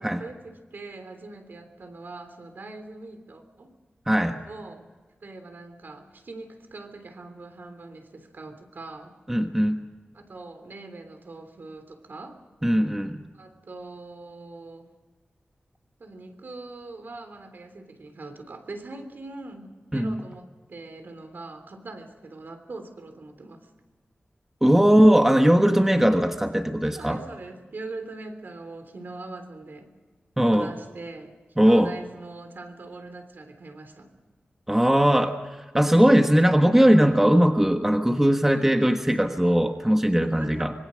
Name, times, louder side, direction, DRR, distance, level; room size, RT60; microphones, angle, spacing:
voice 1, 0.0-3.7 4.5-4.9 5.2-9.1 10.1-12.4 13.3-14.9 16.0-23.6 26.8-29.9 30.4-34.1 40.2-40.7, right 3 dB, 60° right, 7 dB, 3.3 m, -42 dB
voice 2, 4.1-4.4 9.3-9.8 12.6-13.2 19.9-20.2 24.6-27.2 30.4-30.7 31.6-31.9 34.7-35.4 35.7-40.7, equal, 10° right, 5 dB, 1.4 m, -19 dB
25.5 x 23.0 x 6.4 m, 1.3 s
wide cardioid pair, 120°, 4 cm